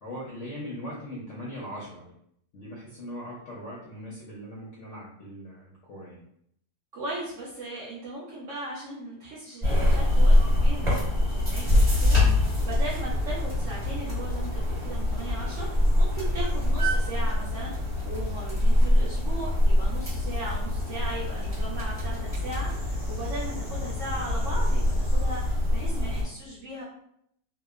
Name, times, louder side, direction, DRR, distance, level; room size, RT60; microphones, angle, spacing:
voice 1, 0.0-2.1 2.5-6.2, equal, 70° left, -5 dB, 0.7 m, -40 dB
voice 2, 6.9-26.8, right 1 dB, 70° right, -6 dB, 0.7 m, -38 dB
sound 1, 9.6-26.2, left 1 dB, 20° right, 1.0 m, -24 dB
sound 2, 12.3-22.8, right 6 dB, 5° left, 0.7 m, -43 dB
2.8 x 2.1 x 2.3 m, 0.70 s
omnidirectional pair, 1.8 m